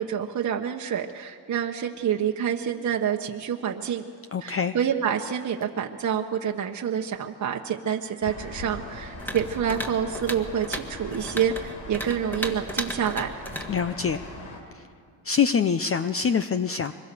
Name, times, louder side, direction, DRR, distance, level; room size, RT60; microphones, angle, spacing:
voice 1, 0.0-4.0 4.4-13.3, right 8 dB, 40° right, 2 dB, 1.1 m, -27 dB
voice 2, 4.3-4.8 13.7-14.2 14.7-14.8 15.2-16.9, left 6 dB, 30° left, 10 dB, 0.7 m, -25 dB
sound 1, 8.2-14.6, left 2 dB, 80° left, 4.2 m, -41 dB
sound 2, 9.2-14.4, right 1 dB, 5° left, 2.1 m, -36 dB
24.5 x 22.0 x 6.9 m, 2.2 s
cardioid pair, 85°, 43 cm